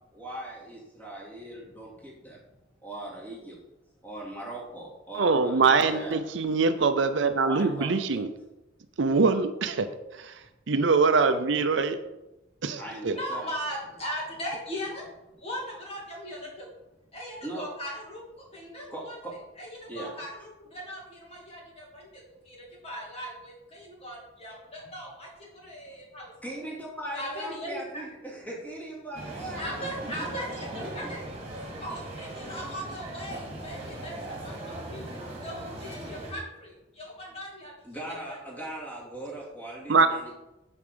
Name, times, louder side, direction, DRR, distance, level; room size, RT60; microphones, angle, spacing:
voice 1, 0.1-2.4 2.8-3.6 4.0-6.2 7.4-8.2 11.2-11.3 12.8-13.5 17.4-17.7 18.9-19.3 19.9-20.1 26.4-29.6 30.8-31.1 37.8-40.3, right 1 dB, 10° left, -4 dB, 2.5 m, -39 dB
voice 2, 5.2-8.3 9.0-9.9 10.1-10.4 10.7-12.0 12.6-13.2 39.9-40.1, right 4 dB, 70° right, 9 dB, 0.6 m, -23 dB
voice 3, 13.1-16.7 17.1-19.2 19.6-26.3 26.6-26.7 27.1-28.2 29.6-31.3 31.8-35.1 35.4-37.7 38.1-38.4, equal, 30° left, -3 dB, 2.5 m, -39 dB
sound 1, 29.1-36.3, right 1 dB, 30° right, 2.0 m, -39 dB
7.1 x 4.9 x 6.8 m, 0.96 s
head